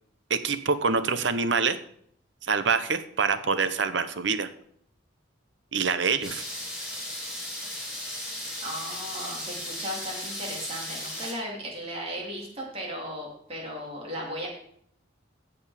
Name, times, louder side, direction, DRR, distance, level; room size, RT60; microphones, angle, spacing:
voice 1, 0.3-1.8 2.5-4.5 5.7-6.4, right 5 dB, 65° right, 12 dB, 0.8 m, -25 dB
sound 1, 6.2-11.3, left 1 dB, 5° right, 3.3 m, -36 dB
voice 2, 8.6-14.5, equal, 30° right, -2 dB, 2.8 m, -36 dB
15.5 x 5.2 x 5.0 m, 0.67 s
head